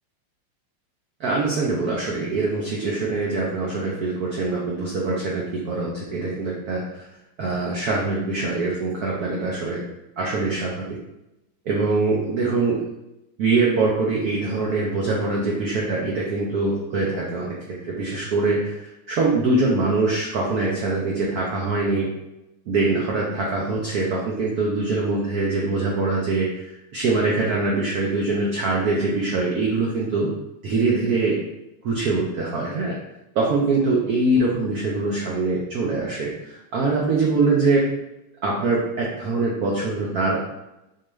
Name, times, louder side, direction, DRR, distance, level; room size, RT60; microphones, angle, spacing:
voice 1, 1.2-7.1 7.4-9.8 10.2-11.0 11.7-12.8 13.4-17.6 17.8-22.1 22.7-26.5 26.9-30.3 30.6-31.4 31.8-33.0 33.4-37.9 38.4-40.4, right 3 dB, 85° right, -3 dB, 0.8 m, -23 dB
4.6 x 2.4 x 3.1 m, 0.92 s
omnidirectional pair, 2.4 m